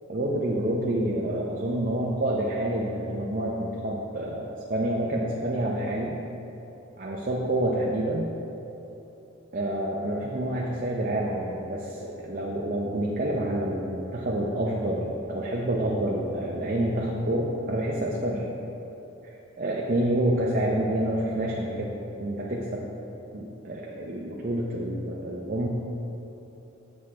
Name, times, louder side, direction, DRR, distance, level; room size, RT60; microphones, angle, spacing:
voice 1, 0.1-6.2 7.0-8.3 9.5-18.5 19.6-22.9 23.3-25.7, right 1 dB, 45° right, -3 dB, 0.6 m, -28 dB
7.9 x 7.1 x 3.2 m, 3.0 s
head